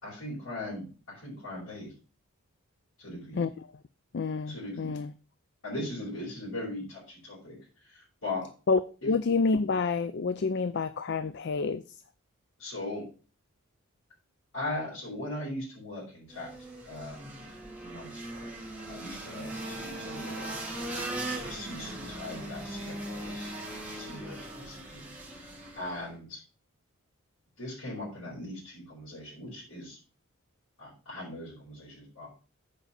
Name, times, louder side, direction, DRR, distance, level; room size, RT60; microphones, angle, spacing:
voice 1, 0.0-1.9 3.0-3.4 4.5-4.9 5.6-7.6 7.9-8.4 12.6-13.0 14.5-16.5 16.8-17.4 17.8-18.5 18.9-20.5 21.3-23.5 23.9-25.1 25.7-26.4 27.6-30.0 30.8-32.3, left 1 dB, 75° left, -9 dB, 5.6 m, -39 dB
voice 2, 3.3-3.7 4.1-5.1 8.7-11.8, left 4 dB, 50° left, 13 dB, 0.4 m, -28 dB
sound 1, 16.3-26.1, right 1 dB, 5° right, 2.2 m, -39 dB
8.3 x 5.1 x 5.9 m, 0.35 s
head